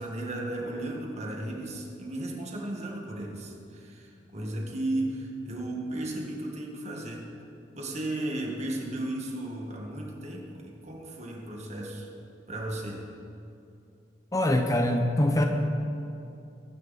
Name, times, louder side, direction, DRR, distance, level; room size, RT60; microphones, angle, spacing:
voice 1, 0.0-7.3 7.7-12.1 12.5-13.1, right 1 dB, 40° right, 0 dB, 1.9 m, -35 dB
voice 2, 14.3-15.4, left 1 dB, 20° left, 4 dB, 0.8 m, -23 dB
22.0 x 9.9 x 4.2 m, 2.7 s
head